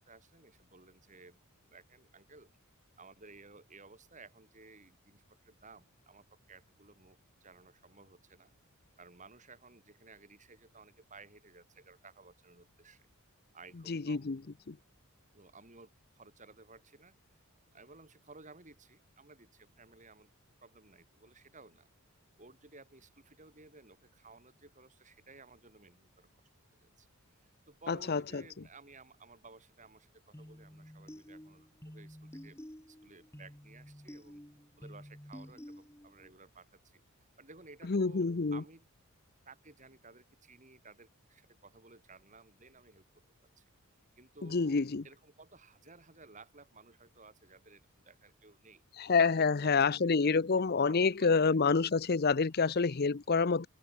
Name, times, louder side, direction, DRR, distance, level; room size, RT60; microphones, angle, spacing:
voice 1, 0.0-1.4 1.7-2.5 3.0-8.5 9.0-13.1 13.5-14.3 15.3-17.2 17.7-20.3 20.6-21.9 22.4-26.3 26.7-27.1 27.3-32.6 32.8-34.4 34.8-37.0 37.4-38.9 39.5-43.1 43.6-43.7 44.2-48.8 49.2-51.6, right 3 dB, 35° right, 5.2 m, -57 dB
voice 2, 13.9-14.4 14.7-14.8 27.9-28.4 37.9-38.6 44.5-45.0 49.0-53.7, left 4 dB, 45° left, 0.6 m, -28 dB
sound 1, 30.3-36.3, equal, 10° left, 1.9 m, -51 dB
head